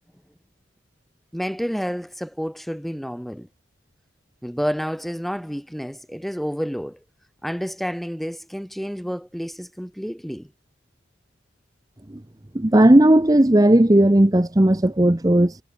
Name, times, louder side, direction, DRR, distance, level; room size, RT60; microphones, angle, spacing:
voice 1, 1.3-3.5 4.4-7.0 7.4-10.5, equal, ahead, 2.9 m, -29 dB
voice 2, 12.5-15.6, right 1 dB, 20° right, 0.7 m, -15 dB
head